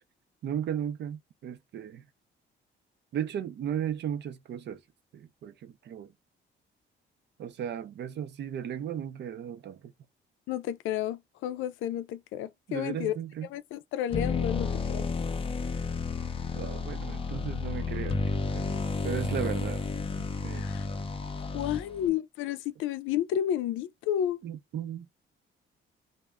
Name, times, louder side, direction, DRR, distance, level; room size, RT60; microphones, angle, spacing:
voice 1, 0.4-2.0 3.1-4.8 5.1-6.1 7.4-9.9 12.7-13.5 16.5-18.7 19.0-19.8 20.2-20.6 24.4-25.1, right 9 dB, 60° right, 0.5 m, -36 dB
voice 2, 10.5-13.2 13.5-15.1 20.5-20.9 21.4-24.4, left 11 dB, 85° left, 0.4 m, -31 dB
sound 1, 14.1-22.1, left 4 dB, 25° left, 0.5 m, -31 dB
2.1 x 2.1 x 3.5 m
cardioid pair, 90°, 20 cm